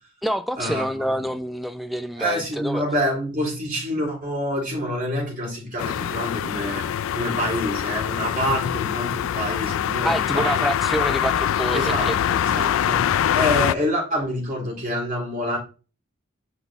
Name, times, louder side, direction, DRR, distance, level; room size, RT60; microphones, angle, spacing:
voice 1, 0.2-2.8 10.0-12.2, equal, ahead, 0.4 m, -27 dB
voice 2, 2.2-10.7 11.7-15.6, equal, 40° right, 3.7 m, -27 dB
sound 1, 5.8-13.7, left 9 dB, 70° left, 0.3 m, -24 dB
6.0 x 6.0 x 3.6 m
head